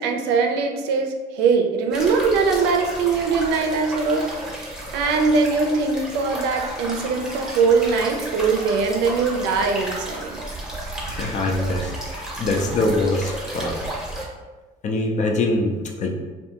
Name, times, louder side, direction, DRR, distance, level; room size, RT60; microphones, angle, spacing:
voice 1, 0.0-4.3 4.9-10.4, right 4 dB, 85° right, 3 dB, 0.4 m, -21 dB
sound 1, 1.9-14.2, right 1 dB, 5° right, 0.7 m, -33 dB
voice 2, 11.1-13.8 14.8-16.1, left 2 dB, 45° left, 2 dB, 0.4 m, -23 dB
2.5 x 2.2 x 2.8 m, 1.2 s
cardioid pair, 110°, 17 cm